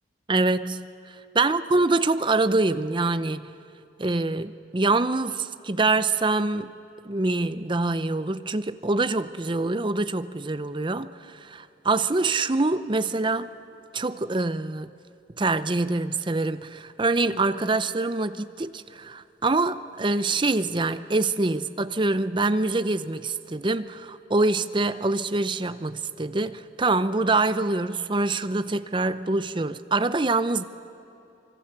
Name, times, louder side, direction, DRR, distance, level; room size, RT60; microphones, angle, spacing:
voice 1, 0.3-0.9 1.3-3.5 4.0-6.7 7.0-13.5 13.9-14.9 15.4-30.6, right 3 dB, 25° right, 0.6 m, -25 dB
25.0 x 24.5 x 6.8 m
head